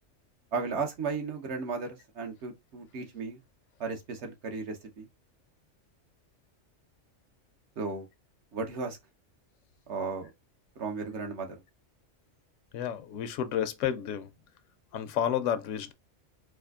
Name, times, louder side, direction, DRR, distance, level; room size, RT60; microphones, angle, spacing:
voice 1, 0.5-3.4 3.8-5.1 7.8-8.1 8.5-9.0 9.9-10.3 10.8-11.5, right 4 dB, 65° right, 1.1 m, -35 dB
voice 2, 12.7-14.3 14.9-15.9, left 9 dB, 85° left, 0.9 m, -31 dB
4.2 x 2.5 x 2.4 m
omnidirectional pair, 1.2 m